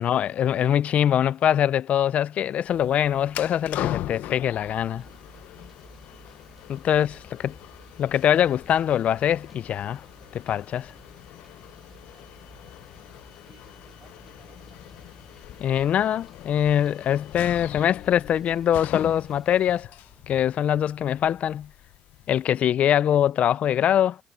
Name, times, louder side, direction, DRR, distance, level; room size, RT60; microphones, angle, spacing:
voice 1, 0.0-5.0 6.7-7.1 7.4-7.5 8.0-10.0 10.3-10.9 15.6-19.9 20.3-21.7 22.3-24.2, left 10 dB, 55° left, 0.3 m, -23 dB
sound 1, 2.6-22.5, left 13 dB, 85° left, 0.7 m, -40 dB
sound 2, 2.7-20.3, right 3 dB, 15° right, 1.2 m, -54 dB
sound 3, 5.0-19.9, equal, ahead, 3.6 m, -61 dB
voice 2, 5.8-6.5 7.0-7.3 11.3-15.1 22.2-22.4, right 8 dB, 50° right, 4.2 m, -63 dB
cardioid pair, 130°, 3 cm